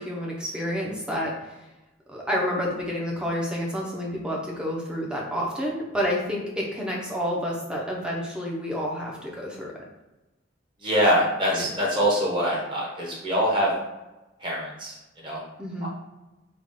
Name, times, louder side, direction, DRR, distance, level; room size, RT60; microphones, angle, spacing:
voice 1, 0.0-1.6 2.1-9.7 11.5-11.7 15.6-15.9, equal, 5° right, -3 dB, 0.7 m, -29 dB
voice 2, 10.8-13.7 14.4-15.4 15.8-15.9, equal, 25° right, -4 dB, 1.1 m, -24 dB
3.6 x 2.3 x 3.7 m, 1.0 s
head